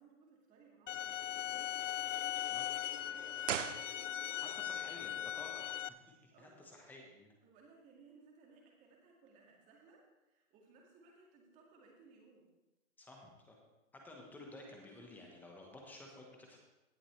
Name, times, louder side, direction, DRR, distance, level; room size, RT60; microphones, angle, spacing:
voice 1, 0.0-2.3 3.0-4.4 4.9-5.3 6.3-6.7 7.4-12.5, right 4 dB, 20° right, -1 dB, 2.1 m, -63 dB
sound 1, 0.9-5.9, left 12 dB, 60° left, 0.5 m, -39 dB
sound 2, 3.4-4.5 4.8-4.9, right 10 dB, 65° right, 0.6 m, -40 dB
voice 2, 4.4-5.7 6.2-7.3 13.0-13.6 13.9-16.6, left 2 dB, 5° left, 0 dB, 1.2 m, -53 dB
17.0 x 7.3 x 3.3 m, 1.0 s
hypercardioid pair, 150°, 41 cm